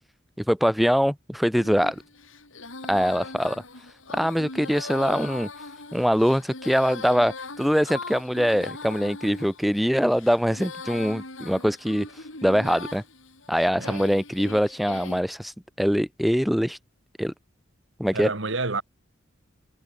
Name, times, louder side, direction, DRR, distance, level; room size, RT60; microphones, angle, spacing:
voice 1, 0.5-2.0 2.9-3.6 4.1-5.5 5.9-12.1 12.4-13.0 13.5-15.5 15.8-16.8 17.2-17.3 18.0-18.3, equal, ahead, 0.5 m, -23 dB
Female singing, 1.6-15.2, left 3 dB, 80° left, 6.5 m, -40 dB
voice 2, 13.7-14.0 18.1-18.8, right 3 dB, 65° right, 1.9 m, -29 dB
head